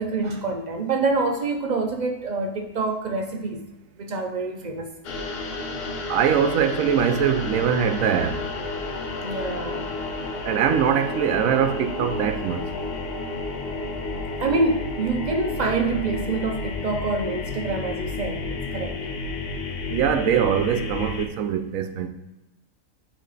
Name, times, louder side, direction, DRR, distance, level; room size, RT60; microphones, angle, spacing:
voice 1, 0.0-3.6 4.0-4.9 9.2-9.9 14.4-19.0, right 3 dB, 60° right, 0.4 m, -26 dB
sound 1, 5.0-21.3, left 3 dB, 55° left, 0.8 m, -31 dB
voice 2, 6.1-8.4 10.5-12.6 19.9-22.1, right 8 dB, 75° right, 1.0 m, -22 dB
8.3 x 3.3 x 3.9 m
omnidirectional pair, 1.4 m